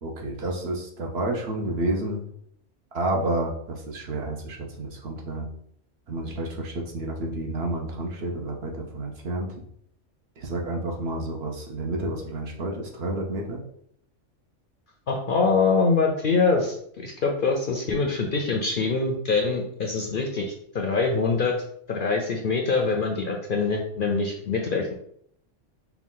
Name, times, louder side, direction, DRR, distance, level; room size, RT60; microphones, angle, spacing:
voice 1, 0.0-2.2 2.9-5.5 6.1-9.5 10.4-13.6, right 2 dB, 60° right, 1 dB, 0.9 m, -30 dB
voice 2, 15.1-21.5 21.9-24.9, left 4 dB, 55° left, 1 dB, 0.6 m, -24 dB
4.6 x 2.3 x 3.7 m, 0.67 s
omnidirectional pair, 1.3 m